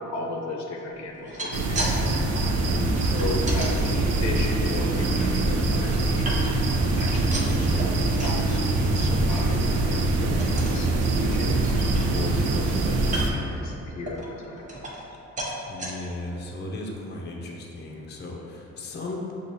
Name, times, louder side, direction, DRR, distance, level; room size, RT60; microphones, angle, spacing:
voice 1, 0.0-1.9 3.0-6.5 7.0-11.6 12.1-14.6, left 2 dB, 70° left, -1 dB, 0.7 m, -35 dB
sound 1, 1.1-2.0 2.2-3.7 4.3-5.3 5.7-6.7 7.0-8.4 8.8-9.0 9.3-9.4 9.8-10.0 10.4-10.8 11.3-11.4 11.6-12.4 13.0-13.5 14.1-15.1 15.4-15.9 16.5-16.6 16.9-17.0, right 1 dB, 25° right, 0.7 m, -35 dB
sound 2, 1.5-13.3, right 2 dB, 55° right, 0.6 m, -24 dB
voice 2, 2.5-2.8 15.7-19.3, left 2 dB, 35° left, -1 dB, 0.6 m, -36 dB
6.6 x 2.5 x 2.9 m, 2.9 s
cardioid pair, 90°, 30 cm